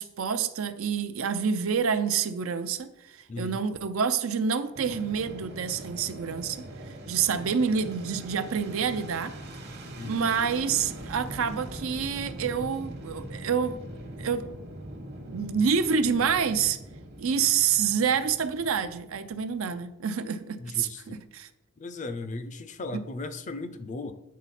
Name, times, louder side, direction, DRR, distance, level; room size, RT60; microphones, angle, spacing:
voice 1, 0.0-6.6 7.1-9.3 10.0-13.8 14.2-14.5 15.3-16.8 17.2-21.5 22.9-23.0, right 6 dB, 70° right, 11 dB, 0.5 m, -27 dB
voice 2, 3.3-3.6 10.0-10.3 20.6-21.0 21.8-24.1, left 3 dB, 35° left, 10 dB, 0.5 m, -36 dB
Fixed-wing aircraft airplane, 4.7-19.9, right 1 dB, 55° right, 1.1 m, -42 dB
8.4 x 4.0 x 4.2 m, 0.95 s
head